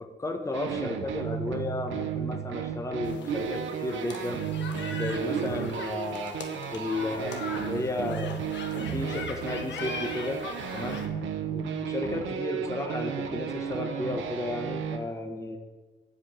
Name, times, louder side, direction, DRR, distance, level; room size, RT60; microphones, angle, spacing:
voice 1, 0.0-4.4 4.9-6.4 6.7-8.3 8.7-10.4 10.7-11.0 11.5-15.6, left 2 dB, 15° left, 4 dB, 1.2 m, -33 dB
sound 1, 0.5-15.0, right 8 dB, 80° right, 1.0 m, -34 dB
sound 2, 3.0-11.1, left 4 dB, 65° left, 1.3 m, -40 dB
sound 3, 3.2-4.1 5.3-6.2, right 6 dB, 50° right, 0.9 m, -35 dB
8.3 x 5.2 x 7.6 m, 1.3 s
cardioid pair, 90°, 20 cm